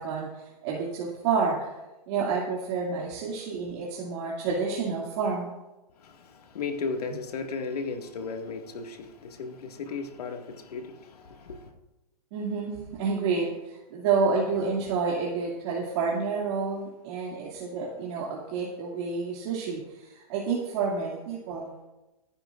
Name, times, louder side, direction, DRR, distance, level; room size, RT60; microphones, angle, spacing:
voice 1, 0.0-1.7 2.1-5.5 12.3-21.7, right 5 dB, 45° right, 2.4 m, -29 dB
voice 2, 6.0-11.7, left 4 dB, 75° left, 2.0 m, -35 dB
26.0 x 9.7 x 2.5 m
hypercardioid pair, 140°, 20 cm